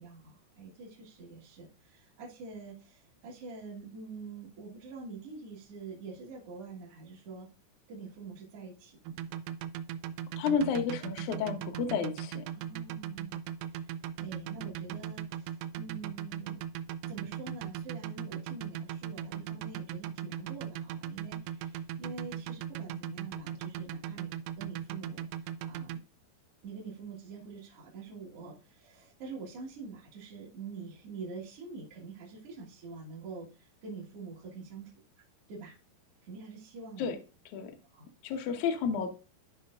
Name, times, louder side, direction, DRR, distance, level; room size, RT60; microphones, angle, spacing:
voice 1, 0.0-7.5 7.9-9.3 12.5-13.8 14.2-16.6 17.0-26.0 26.6-34.9 35.5-35.8 36.2-37.1 37.9-38.1, right 4 dB, 50° right, -6 dB, 1.9 m, -46 dB
sound 1, 9.1-26.0, right 10 dB, 80° right, 2.4 m, -38 dB
voice 2, 10.4-12.4 37.0-37.2 37.5-37.7 38.2-39.1, left 6 dB, 70° left, 6 dB, 1.9 m, -31 dB
12.5 x 5.1 x 2.5 m, 0.33 s
omnidirectional pair, 4.9 m